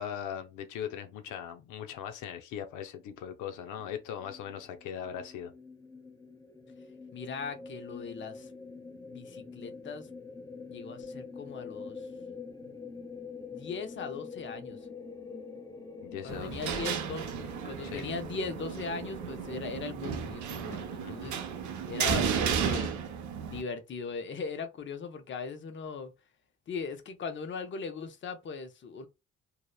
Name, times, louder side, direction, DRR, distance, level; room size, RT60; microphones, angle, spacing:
voice 1, 0.0-5.5 16.0-16.8 17.8-18.1 21.0-21.4, left 9 dB, 85° left, 0.5 m, -40 dB
sound 1, 4.0-19.6, left 4 dB, 15° left, 0.8 m, -46 dB
voice 2, 7.1-8.5 9.1-10.1 10.7-12.0 12.6-12.7 13.5-14.8 16.2-17.2 17.6-21.4 21.9-22.9 23.4-26.1 26.7-29.1, left 5 dB, 40° left, 0.6 m, -39 dB
sound 2, 16.3-23.6, right 7 dB, 75° right, 0.6 m, -33 dB
2.8 x 2.0 x 2.3 m
cardioid pair, 90°, 30 cm